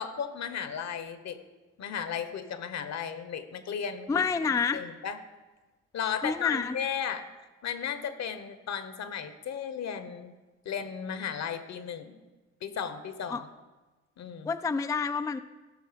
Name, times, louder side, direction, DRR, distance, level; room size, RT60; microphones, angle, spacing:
voice 1, 0.0-1.4 1.8-5.2 5.9-7.2 7.6-10.3 10.6-12.2 12.6-13.5 14.2-14.5, left 7 dB, 60° left, 11 dB, 1.1 m, -35 dB
voice 2, 4.1-4.8 6.2-6.7 13.3-13.4 14.4-15.4, left 5 dB, 10° left, 9 dB, 0.3 m, -28 dB
15.5 x 6.0 x 5.1 m, 1.2 s
cardioid pair, 90°, 30 cm